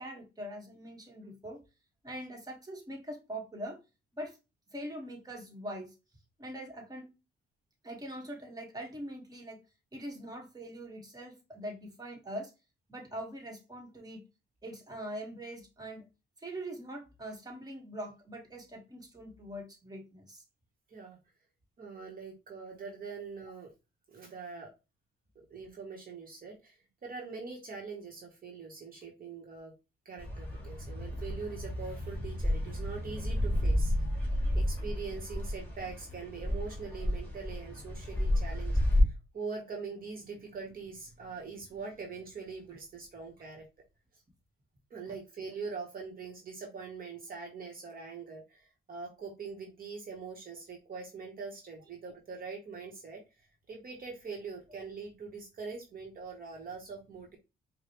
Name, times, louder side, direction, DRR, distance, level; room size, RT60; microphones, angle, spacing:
voice 1, 0.0-1.6 2.0-3.8 4.1-4.4 4.7-5.9 6.4-7.1 7.8-9.6 9.9-12.5 12.9-14.2 14.6-16.0 16.4-20.4 45.4-45.6, right 1 dB, 20° right, 0 dB, 1.4 m, -42 dB
voice 2, 21.8-23.7 24.1-24.7 25.3-29.7 30.0-33.9 34.3-43.7 44.1-44.2 44.9-57.4, right 4 dB, 45° right, 1 dB, 1.1 m, -43 dB
sound 1, 30.2-39.0, left 1 dB, 10° left, 1.7 m, -32 dB
4.7 x 2.2 x 3.0 m, 0.28 s
cardioid pair, 90°, 20 cm